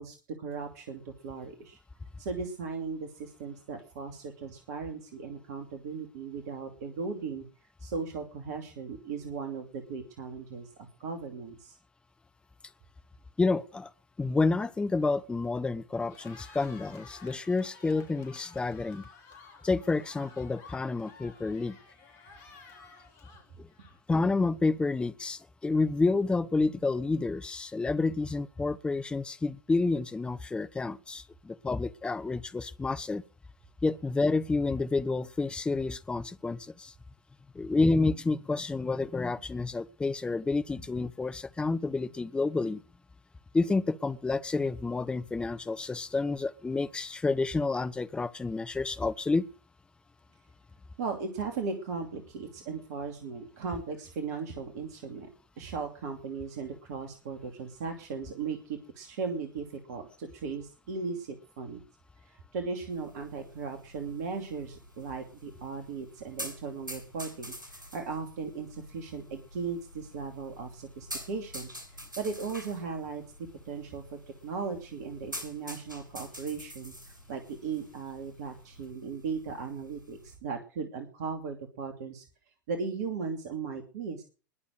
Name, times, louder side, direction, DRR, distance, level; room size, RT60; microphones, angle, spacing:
voice 1, 0.0-1.8 2.2-7.4 7.8-11.8 51.0-55.3 55.6-61.8 62.2-71.7 72.2-73.2 73.7-74.0 74.4-82.2 82.7-84.2, right 5 dB, 55° right, 2.8 m, -37 dB
voice 2, 13.4-13.9 14.2-19.0 19.6-21.8 23.6-23.7 24.1-33.2 33.8-36.9 37.5-42.8 43.5-49.5, left 3 dB, 10° left, 0.8 m, -29 dB
Cheering, 16.0-24.2, left 4 dB, 50° left, 4.0 m, -53 dB
sound 1, 62.9-80.4, equal, 85° right, 7.8 m, -47 dB
21.0 x 7.1 x 6.4 m
figure-of-eight pair, 90°, 10 cm